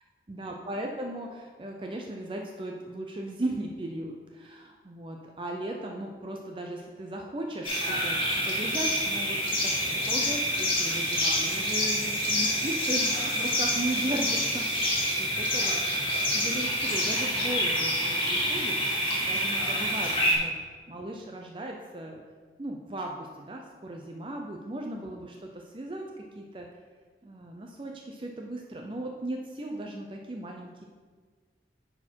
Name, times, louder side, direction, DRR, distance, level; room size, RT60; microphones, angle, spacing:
voice 1, 0.3-8.2 8.4-9.4 9.6-14.7 15.2-15.3 15.5-15.7 16.3-20.5 20.9-22.2 22.6-26.1 26.3-26.7 27.2-30.8, right 1 dB, 30° right, 1 dB, 0.5 m, -37 dB
sound 1, 7.6-20.3, equal, 30° left, 1.7 m, -27 dB
9.9 x 4.3 x 4.5 m, 1.5 s
head